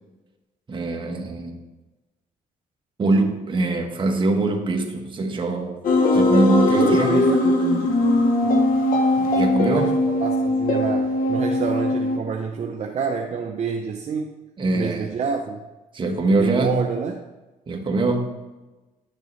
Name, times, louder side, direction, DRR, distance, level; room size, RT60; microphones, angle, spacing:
voice 1, 0.7-1.6 3.0-5.8 6.1-7.2 9.2-10.0 14.6-15.1 15.9-16.9 17.7-18.3, right 2 dB, 35° right, 2 dB, 1.3 m, -23 dB
sound 1, 5.8-12.2, left 1 dB, 70° left, 1.1 m, -20 dB
voice 2, 6.8-7.9 9.7-9.9 10.2-14.3 14.7-15.6 16.4-17.2, right 5 dB, 50° right, 2 dB, 0.7 m, -27 dB
11.0 x 6.6 x 3.2 m, 1.1 s
cardioid pair, 105°, 15 cm